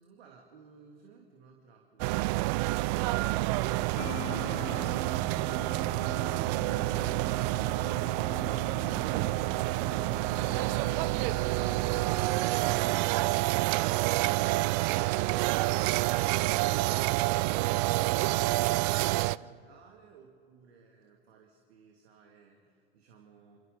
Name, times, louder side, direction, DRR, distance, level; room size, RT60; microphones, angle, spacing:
voice 1, 0.0-23.6, right 5 dB, 70° right, 1 dB, 2.7 m, -57 dB
sound 1, 2.0-19.4, right 19 dB, 40° right, 0.4 m, -28 dB
sound 2, 4.0-13.5, left 15 dB, 40° left, 0.9 m, -45 dB
28.0 x 27.5 x 4.1 m, 2.3 s
hypercardioid pair, 95°, 32 cm